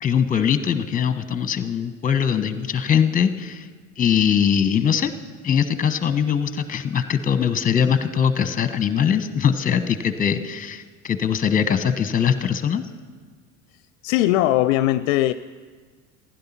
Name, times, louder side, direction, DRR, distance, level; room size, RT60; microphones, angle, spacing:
voice 1, 0.0-3.7 4.0-5.1 5.4-12.9, left 8 dB, 20° left, 12 dB, 0.9 m, -21 dB
voice 2, 14.0-15.3, left 15 dB, 60° left, 13 dB, 0.5 m, -19 dB
15.5 x 10.5 x 5.8 m, 1.5 s
figure-of-eight pair, 70°, 45 cm